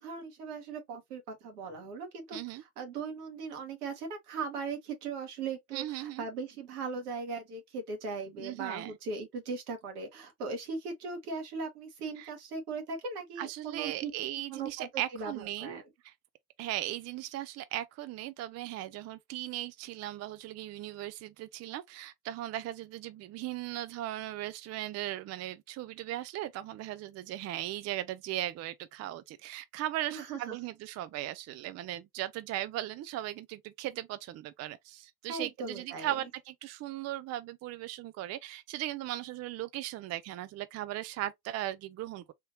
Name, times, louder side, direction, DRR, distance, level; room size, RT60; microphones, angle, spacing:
voice 1, 0.0-14.1 14.5-15.8 30.1-30.6 35.3-36.1, right 4 dB, 75° right, 1.3 m, -39 dB
voice 2, 2.3-2.6 5.7-6.3 8.3-9.0 12.2-12.3 13.4-16.1 16.6-42.2, right 14 dB, 35° right, 0.4 m, -38 dB
3.6 x 2.7 x 2.6 m
figure-of-eight pair, 60°, 46 cm